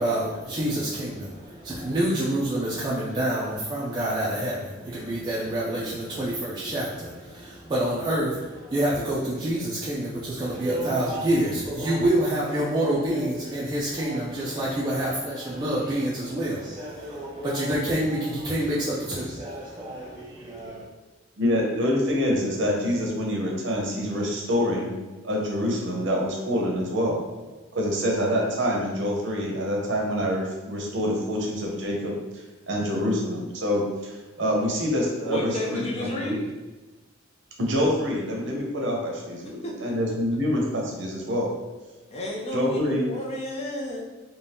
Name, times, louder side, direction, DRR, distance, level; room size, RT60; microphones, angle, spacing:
voice 1, 0.0-20.8, right 1 dB, 20° right, -7 dB, 0.4 m, -27 dB
voice 2, 21.4-25.0 25.2-27.2 27.7-32.1 32.7-36.4 37.6-41.5 42.5-43.1, equal, 65° right, -1 dB, 0.7 m, -26 dB
voice 3, 35.2-36.4 39.6-39.9 42.1-44.0, left 1 dB, 35° left, -2 dB, 0.5 m, -31 dB
2.6 x 2.2 x 3.4 m, 1.2 s
head